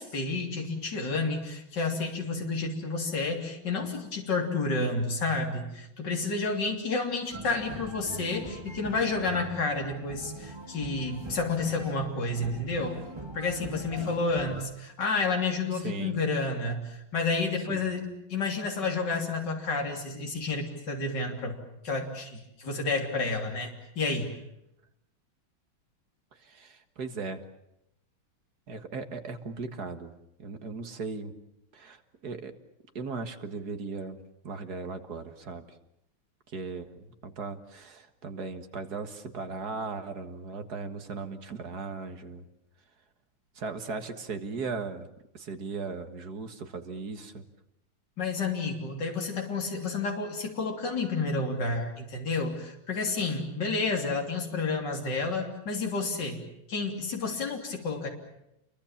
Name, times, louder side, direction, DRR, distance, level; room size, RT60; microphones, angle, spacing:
voice 1, 0.0-13.0 13.3-24.3 48.2-56.4 56.7-58.1, left 3 dB, 60° left, 2 dB, 3.8 m, -30 dB
sound 1, 7.3-14.6, right 2 dB, 15° right, 2.0 m, -42 dB
voice 2, 15.7-16.2 17.7-17.8 26.3-27.4 28.7-31.4 31.7-32.6 32.9-35.8 36.5-42.5 43.6-47.4, right 4 dB, 50° right, 8 dB, 2.1 m, -38 dB
28.5 x 23.5 x 7.2 m, 0.84 s
omnidirectional pair, 2.2 m